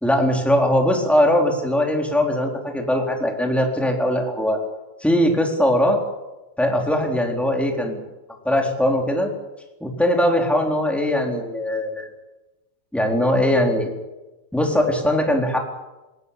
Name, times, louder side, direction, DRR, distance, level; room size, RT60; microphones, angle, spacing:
voice 1, 0.0-4.6 5.0-6.0 6.6-8.0 8.4-9.3 9.8-12.1 12.9-13.9 14.5-15.6, left 1 dB, ahead, 1 dB, 3.2 m, -20 dB
20.0 x 19.5 x 8.4 m, 1.1 s
omnidirectional pair, 4.6 m